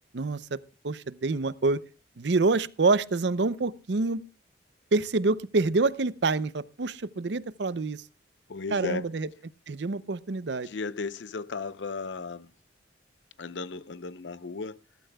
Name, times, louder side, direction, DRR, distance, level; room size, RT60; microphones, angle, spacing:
voice 1, 0.1-0.6 0.8-1.8 2.2-4.2 4.9-8.0 8.7-9.3 9.7-10.7, right 3 dB, 70° right, 0.6 m, -26 dB
voice 2, 8.5-9.1 10.6-12.5 13.4-14.8, left 4 dB, 75° left, 0.7 m, -35 dB
21.0 x 12.5 x 2.3 m
head